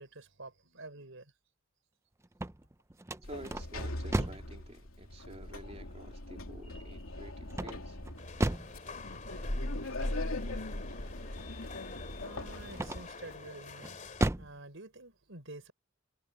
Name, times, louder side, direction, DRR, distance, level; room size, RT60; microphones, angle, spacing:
voice 1, 0.0-1.3 11.6-14.0 14.4-15.7, right 2 dB, 70° right, 4.1 m, -49 dB
sound 1, 2.2-4.6 7.5-8.8 12.7-13.3 13.8-14.6, right 1 dB, 15° right, 0.6 m, -34 dB
Sliding door, 3.2-13.4, left 1 dB, 90° left, 3.2 m, -40 dB
voice 2, 3.2-8.0, right 1 dB, 30° right, 3.5 m, -50 dB
sound 2, 8.2-14.3, left 4 dB, 35° left, 3.0 m, -48 dB
head